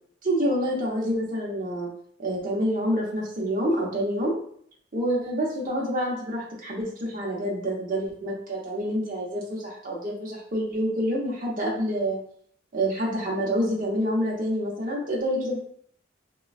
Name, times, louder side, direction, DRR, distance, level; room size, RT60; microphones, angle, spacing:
voice 1, 0.2-1.9 2.2-4.4 4.9-12.2 12.7-15.6, equal, 45° right, -3 dB, 0.8 m, -27 dB
3.1 x 2.2 x 2.4 m, 0.62 s
head